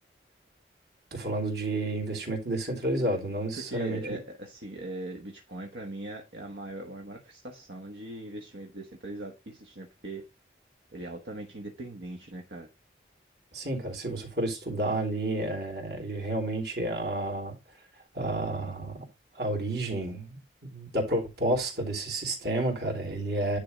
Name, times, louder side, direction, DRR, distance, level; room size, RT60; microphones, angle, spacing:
voice 1, 1.1-4.2 13.5-17.5 18.1-19.0 19.3-20.4 20.7-23.6, right 1 dB, 60° right, 3.2 m, -30 dB
voice 2, 3.6-10.2 10.9-12.7, right 1 dB, 75° right, 1.3 m, -40 dB
10.5 x 3.5 x 5.1 m
head